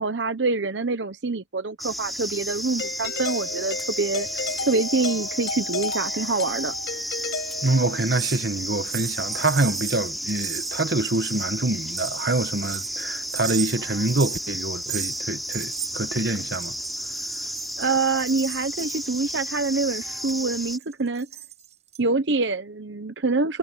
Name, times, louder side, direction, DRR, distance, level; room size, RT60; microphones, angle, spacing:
voice 1, 0.0-6.7 17.8-21.3 22.0-23.6, right 3 dB, 80° right, 1.0 m, -26 dB
sound 1, 1.8-20.8, equal, ahead, 5.9 m, -32 dB
Doorbell, 2.8-8.2, left 3 dB, 70° left, 5.4 m, -33 dB
voice 2, 7.6-16.7, right 2 dB, 65° right, 1.4 m, -26 dB
sound 2, 8.1-11.6 11.8-15.2 15.5-22.0, right 12 dB, 40° right, 5.7 m, -37 dB
head